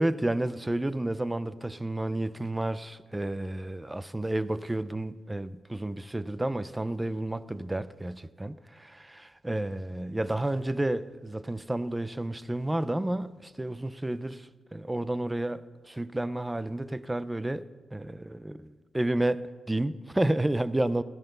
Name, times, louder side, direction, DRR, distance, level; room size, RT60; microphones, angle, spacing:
voice 1, 0.0-21.0, right 1 dB, 10° right, 0.5 m, -31 dB
14.5 x 13.0 x 6.7 m
wide cardioid pair, 150°, 0 cm